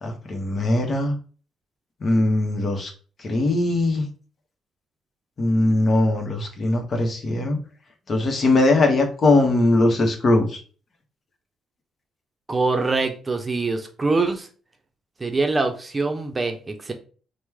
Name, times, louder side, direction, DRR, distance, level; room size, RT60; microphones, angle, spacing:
voice 1, 0.0-1.1 2.0-2.9 3.2-4.0 5.4-7.6 8.1-10.6, left 2 dB, 45° left, 4 dB, 0.9 m, -20 dB
voice 2, 12.5-14.5 15.2-16.9, right 3 dB, 25° right, 5 dB, 0.6 m, -24 dB
3.0 x 2.1 x 3.4 m, 0.39 s
supercardioid pair, 65°, 0 cm